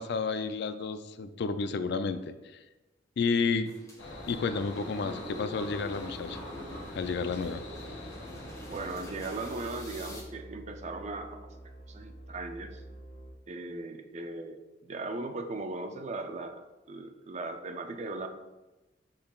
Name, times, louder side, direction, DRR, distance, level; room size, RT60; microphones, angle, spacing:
voice 1, 0.0-2.3 3.2-3.7 4.3-6.4 6.9-7.6, left 4 dB, 60° left, 11 dB, 0.4 m, -31 dB
sound 1, 3.7-10.2, left 1 dB, 20° left, 1.1 m, -45 dB
sound 2, 4.0-9.0, left 1 dB, 80° left, 1.4 m, -44 dB
sound 3, 5.5-13.3, right 1 dB, 45° left, 1.5 m, -48 dB
voice 2, 8.7-11.4 11.9-12.8 13.5-18.3, right 2 dB, 40° right, 6 dB, 0.5 m, -38 dB
10.0 x 3.8 x 2.4 m, 1.1 s
head